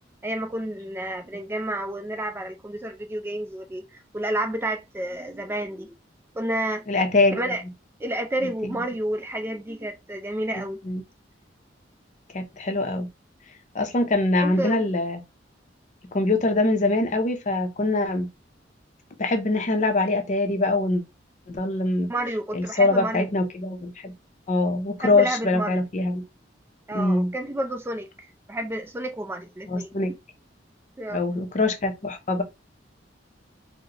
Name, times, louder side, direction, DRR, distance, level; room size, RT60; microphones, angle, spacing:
voice 1, 0.2-5.9 6.3-6.9 7.3-7.6 8.0-10.8 14.4-14.9 22.1-23.3 25.0-25.8 26.9-29.9 31.0-31.2, right 1 dB, 15° right, 0.3 m, -30 dB
voice 2, 6.9-7.4 8.6-8.8 10.5-11.0 12.3-13.1 13.7-15.2 16.1-18.3 19.2-21.0 21.5-22.1 22.5-24.1 24.5-26.2 26.9-27.3 29.7-30.1 31.1-32.4, left 2 dB, 40° left, 0.6 m, -23 dB
3.9 x 2.0 x 2.8 m
head